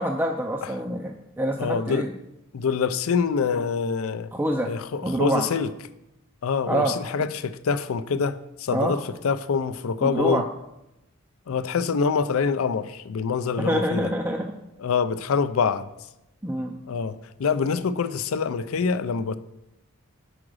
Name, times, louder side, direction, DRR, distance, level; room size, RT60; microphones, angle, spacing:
voice 1, 0.0-2.1 4.3-4.7 5.0-5.4 6.7-7.0 8.7-9.0 10.0-10.4 13.6-14.5 16.4-16.7, right 1 dB, 10° right, 0.4 m, -26 dB
voice 2, 1.6-2.1 2.5-4.3 4.6-5.7 6.4-10.4 11.5-14.1 14.8-15.9 16.9-17.1 17.4-19.4, left 5 dB, 70° left, 0.4 m, -25 dB
5.0 x 4.9 x 6.2 m
head